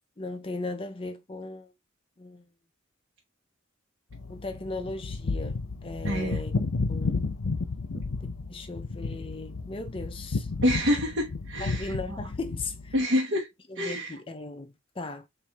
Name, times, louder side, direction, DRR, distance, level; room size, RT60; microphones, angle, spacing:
voice 1, 0.2-1.7 2.2-2.5 4.3-6.5 6.9-7.2 8.2-10.5 11.6-13.1 13.7-15.3, left 3 dB, 25° left, 0.5 m, -38 dB
sound 1, 4.1-13.0, left 3 dB, 90° left, 0.7 m, -32 dB
voice 2, 6.0-6.4 10.6-11.9 12.9-13.5 13.8-14.1, equal, 65° right, 1.1 m, -26 dB
4.5 x 2.7 x 3.4 m
head